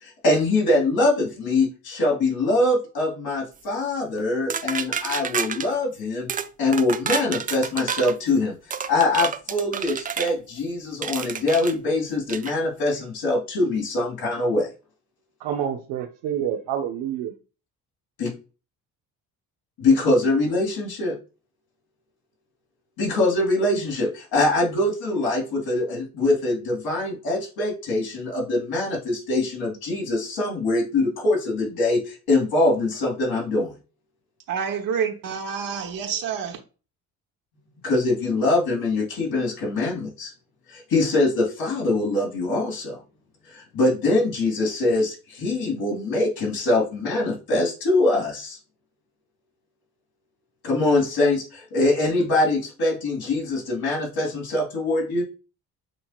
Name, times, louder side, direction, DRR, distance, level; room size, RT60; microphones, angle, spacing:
voice 1, 0.0-6.3 6.6-8.5 8.9-14.7 18.2-18.3 19.8-21.2 23.0-33.7 37.8-40.3 40.7-43.0 43.5-48.6 50.6-55.2, left 2 dB, 75° left, 2.6 m, -23 dB
sound 1, 4.5-5.7 6.3-6.5 6.7-8.2 8.7-10.3 11.0-11.7 12.3-12.5, right 7 dB, 25° right, 0.3 m, -29 dB
voice 2, 15.4-17.4, right 9 dB, 85° right, 0.7 m, -28 dB
voice 3, 34.5-36.6, right 7 dB, 65° right, 1.1 m, -28 dB
7.7 x 2.9 x 2.4 m
supercardioid pair, 70°, 37 cm